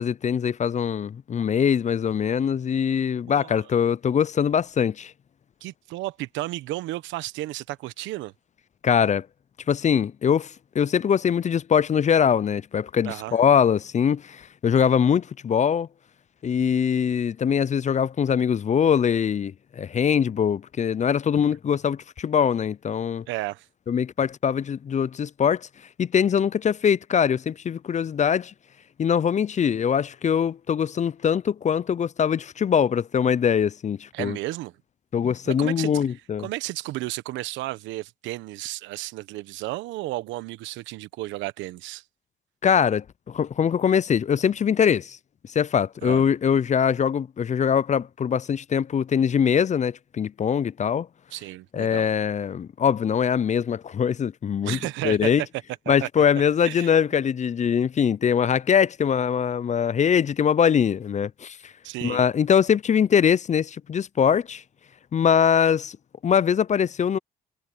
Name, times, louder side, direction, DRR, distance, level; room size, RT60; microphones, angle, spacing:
voice 1, 0.0-5.1 8.8-9.3 9.7-15.9 16.4-23.3 23.9-25.7 26.0-28.5 29.0-34.4 35.1-36.5 42.6-45.2 45.5-51.1 51.7-54.8 55.0-55.4 55.9-61.7 62.0-64.6 65.1-66.0 66.2-67.2, left 7 dB, 40° left, 0.5 m, -22 dB
voice 2, 3.3-3.6 5.6-8.3 13.0-13.4 23.3-23.7 34.1-34.7 35.5-36.0 36.4-42.0 46.0-46.2 51.3-52.1 54.6-55.3 55.9-56.1 56.6-56.9 61.8-62.2, right 17 dB, 85° right, 1.2 m, -33 dB
supercardioid pair, 60°, 19 cm